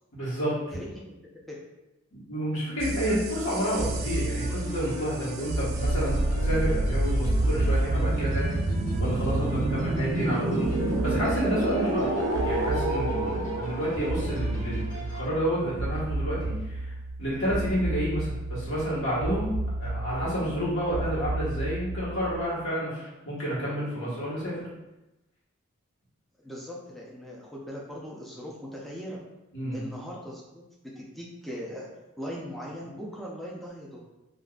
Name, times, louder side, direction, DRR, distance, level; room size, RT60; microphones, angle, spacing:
voice 1, 0.1-0.8 2.1-8.6 9.0-16.9 17.2-19.5 19.8-24.7 29.5-29.8, equal, 60° left, -9 dB, 1.3 m, -30 dB
voice 2, 0.7-1.6 26.4-29.2 29.7-30.6 31.0-31.9 32.2-34.0, equal, ahead, -4 dB, 0.4 m, -39 dB
sound 1, 2.8-22.4, right 2 dB, 65° right, 0.4 m, -29 dB
sound 2, 3.6-15.3, left 1 dB, 35° left, 0.8 m, -41 dB
3.5 x 2.5 x 2.4 m, 0.98 s
head